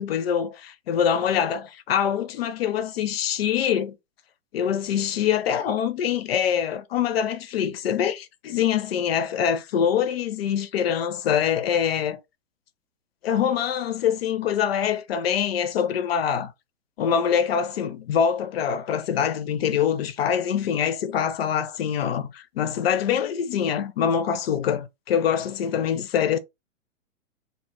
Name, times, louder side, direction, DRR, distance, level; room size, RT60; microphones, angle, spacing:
voice 1, 0.0-4.0 4.5-12.2 13.2-16.5 17.0-26.4, left 8 dB, 50° left, 0.4 m, -24 dB
2.1 x 2.1 x 3.1 m
figure-of-eight pair, 115°, 38 cm